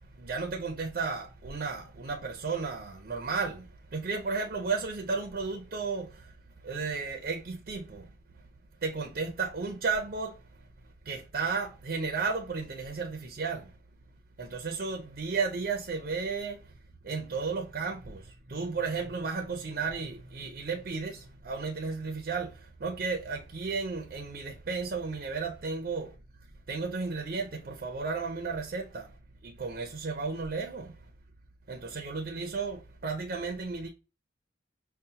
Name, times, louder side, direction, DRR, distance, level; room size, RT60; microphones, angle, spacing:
voice 1, 0.1-6.3 6.6-8.1 8.8-10.4 11.0-13.7 14.4-16.7 17.0-26.1 26.7-29.1 29.4-31.0 31.7-33.9, right 4 dB, 45° right, 0.4 m, -33 dB
5.3 x 2.1 x 2.7 m
head